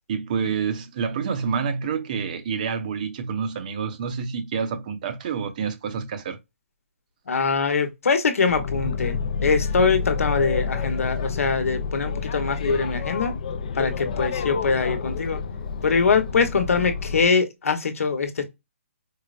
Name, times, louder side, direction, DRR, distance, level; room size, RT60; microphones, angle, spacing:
voice 1, 0.1-6.4, right 6 dB, 35° right, 0.6 m, -28 dB
voice 2, 7.3-13.4 13.7-15.4 15.8-18.4, left 5 dB, 75° left, 1.0 m, -23 dB
Boat Water vehicle, 8.5-17.3, left 5 dB, 35° left, 0.4 m, -29 dB
4.5 x 2.0 x 2.4 m
hypercardioid pair, 170°, 8 cm